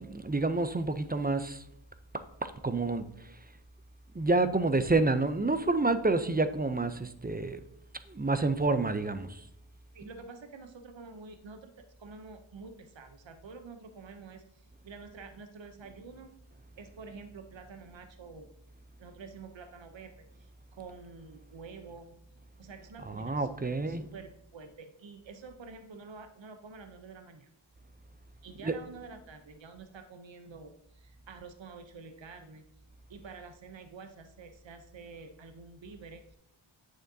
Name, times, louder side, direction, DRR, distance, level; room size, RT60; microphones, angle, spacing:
voice 1, 0.0-1.6 2.4-3.0 4.1-7.6 8.1-9.4 23.1-24.0 28.6-28.7, right 3 dB, 20° right, 11 dB, 0.4 m, -28 dB
voice 2, 9.9-11.7 12.0-16.4 16.7-18.5 19.0-22.1 22.6-27.5 28.4-32.6 33.1-36.4, right 4 dB, 70° right, 7 dB, 0.7 m, -48 dB
9.0 x 6.4 x 2.7 m, 0.82 s
wide cardioid pair, 45°, 48 cm